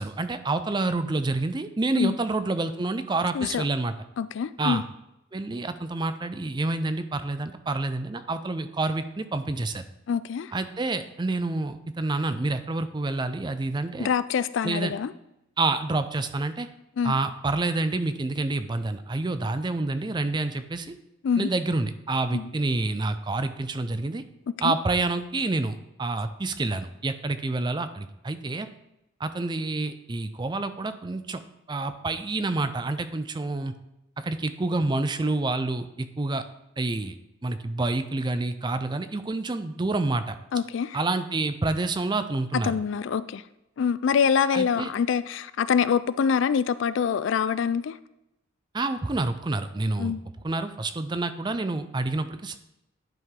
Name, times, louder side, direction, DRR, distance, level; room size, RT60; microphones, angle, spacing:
voice 1, 0.0-3.9 4.6-4.8 5.3-9.8 10.5-14.1 14.6-14.9 15.6-16.7 17.0-21.0 21.4-24.2 24.6-28.7 29.2-31.4 31.7-33.7 34.2-36.4 36.8-37.1 37.4-40.4 40.9-42.8 44.5-44.9 48.7-50.1 50.4-52.6, right 2 dB, 20° right, 11 dB, 0.4 m, -28 dB
voice 2, 4.2-4.8 10.1-10.5 14.0-15.1 17.0-17.1 21.2-21.5 22.3-22.5 24.6-24.7 40.5-41.0 42.6-43.4 43.8-47.9 50.0-50.2, left 7 dB, 65° left, 15 dB, 0.3 m, -25 dB
11.0 x 4.8 x 3.7 m, 0.87 s
head